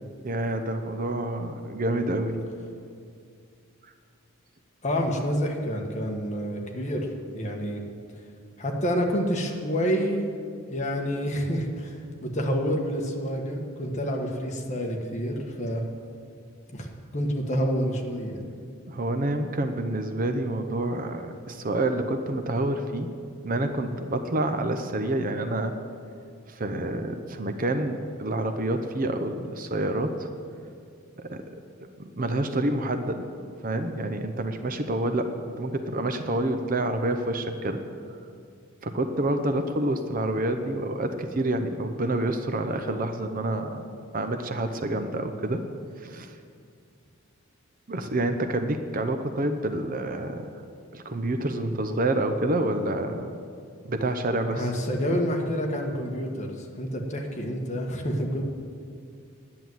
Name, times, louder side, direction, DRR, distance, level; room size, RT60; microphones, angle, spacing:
voice 1, 0.2-2.4 18.9-23.1 23.4-25.7 26.5-30.3 31.2-31.4 32.0-33.2 33.6-37.8 38.8-43.8 44.1-45.6 46.0-46.4 47.9-50.5 50.9-53.3 53.8-54.7, right 1 dB, 40° right, 7 dB, 0.7 m, -28 dB
voice 2, 4.8-7.1 7.3-7.8 8.6-10.2 10.7-15.8 16.7-16.9 17.1-18.5 54.5-58.4, equal, 35° left, 1 dB, 1.4 m, -28 dB
10.5 x 7.6 x 9.4 m, 2.3 s
head